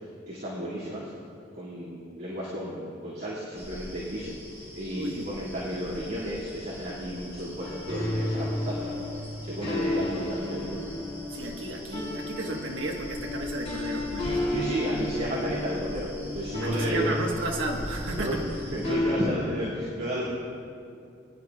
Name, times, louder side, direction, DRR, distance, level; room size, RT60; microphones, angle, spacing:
voice 1, 0.3-1.1 1.5-4.4 4.7-9.0 9.4-10.8 14.5-17.1 18.1-18.3 18.7-20.2, equal, 60° right, -9 dB, 2.3 m, -33 dB
sound 1, 3.6-19.0, equal, 15° right, 2.4 m, -43 dB
voice 2, 4.9-5.3 11.3-14.4 16.6-18.4, right 2 dB, 80° right, 1 dB, 1.4 m, -33 dB
sound 2, 7.6-19.2, left 1 dB, 35° left, 2.9 m, -32 dB
22.5 x 10.5 x 2.4 m, 2.5 s
head